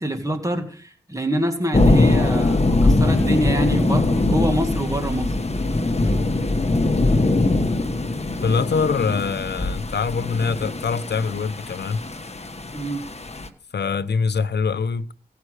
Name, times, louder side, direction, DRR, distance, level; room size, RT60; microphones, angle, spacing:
voice 1, 0.0-5.4 6.0-6.2 12.7-13.1, right 1 dB, 20° right, 2.1 m, -26 dB
sound 1, 1.7-13.5, left 2 dB, 40° left, 1.3 m, -21 dB
voice 2, 8.4-12.0 13.7-15.1, left 5 dB, 80° left, 0.7 m, -24 dB
17.0 x 5.9 x 6.5 m
cardioid pair, 55°, 17 cm